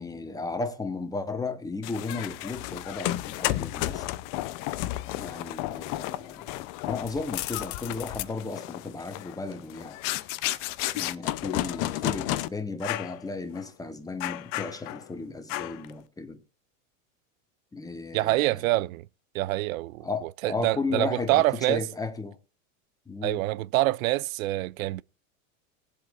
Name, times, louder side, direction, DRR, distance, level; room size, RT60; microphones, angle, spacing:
voice 1, 0.0-4.1 5.1-6.5 6.8-10.0 10.9-16.4 17.7-18.6 20.0-22.4 23.1-23.4, left 3 dB, 10° left, 1.3 m, -34 dB
sound 1, 1.8-12.5 12.8-13.2 13.5-13.7 14.2-15.1 15.5-15.9, left 17 dB, 50° left, 0.6 m, -32 dB
voice 2, 18.1-19.1 19.3-21.8 23.2-25.0, right 18 dB, 85° right, 0.5 m, -26 dB
21.0 x 7.8 x 2.5 m
supercardioid pair, 115°, 40 cm